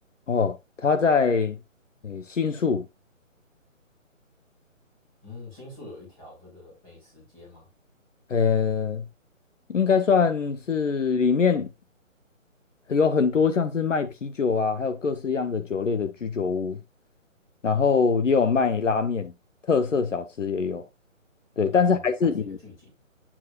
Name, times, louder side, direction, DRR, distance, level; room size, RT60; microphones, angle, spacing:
voice 1, 0.3-1.6 2.0-2.8 8.3-9.0 9.7-11.7 12.9-16.8 17.6-19.3 19.6-20.8 21.6-22.6, left 5 dB, 65° left, 1.1 m, -23 dB
voice 2, 5.2-7.7 21.8-22.9, left 2 dB, 10° left, 2.7 m, -45 dB
8.2 x 7.5 x 2.5 m
hypercardioid pair, 170°, 40 cm